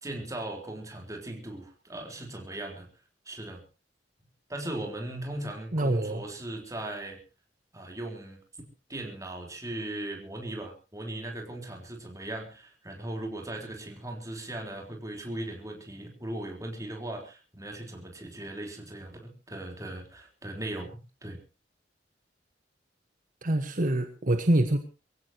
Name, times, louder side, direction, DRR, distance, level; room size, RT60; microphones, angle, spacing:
voice 1, 0.0-2.9 3.3-3.6 4.5-7.2 7.7-8.4 8.9-21.4, right 1 dB, 20° right, 2 dB, 3.9 m, -38 dB
voice 2, 5.7-6.2 23.4-24.8, right 1 dB, 50° right, 7 dB, 1.4 m, -25 dB
24.0 x 16.0 x 3.0 m, 0.32 s
head